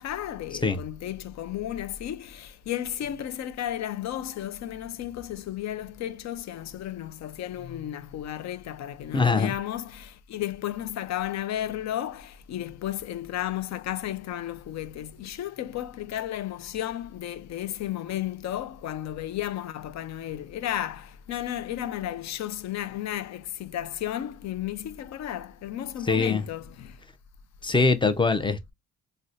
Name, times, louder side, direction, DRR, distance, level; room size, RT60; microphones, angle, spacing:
voice 1, 0.0-27.0, left 12 dB, 65° left, 0.5 m, -33 dB
voice 2, 9.1-9.5 26.1-26.4 27.6-28.7, left 4 dB, 15° left, 0.6 m, -23 dB
3.9 x 2.2 x 2.4 m
cardioid pair, 90°, 30 cm